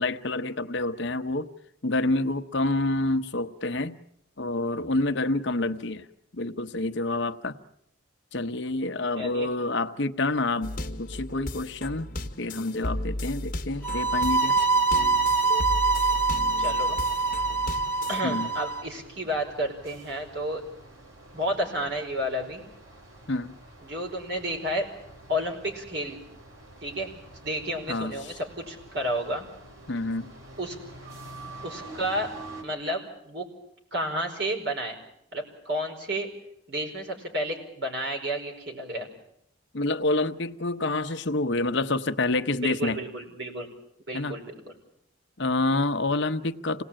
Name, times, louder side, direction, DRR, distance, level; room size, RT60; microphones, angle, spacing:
voice 1, 0.0-1.5 1.8-4.0 4.4-6.1 6.3-7.6 8.3-12.1 12.4-14.6 18.2-18.5 23.3-23.5 27.9-28.1 29.9-30.3 39.7-43.0 44.1-44.3 45.4-46.8, left 2 dB, 60° left, 9 dB, 1.0 m, -28 dB
voice 2, 9.1-9.5 16.6-17.0 18.1-20.6 21.3-22.6 23.8-24.9 25.3-26.2 26.8-29.4 30.6-30.7 31.6-32.3 32.6-33.5 33.9-34.9 35.3-36.3 36.7-39.1 42.6-43.7 44.1-44.5, equal, 55° right, 2 dB, 5.1 m, -31 dB
sound 1, 10.6-18.2, left 1 dB, 40° left, 1.4 m, -35 dB
sound 2, 13.7-32.6, right 2 dB, 90° right, 4.5 m, -48 dB
sound 3, 13.8-18.8, right 4 dB, 10° left, 1.7 m, -24 dB
27.0 x 18.5 x 8.9 m, 0.75 s
head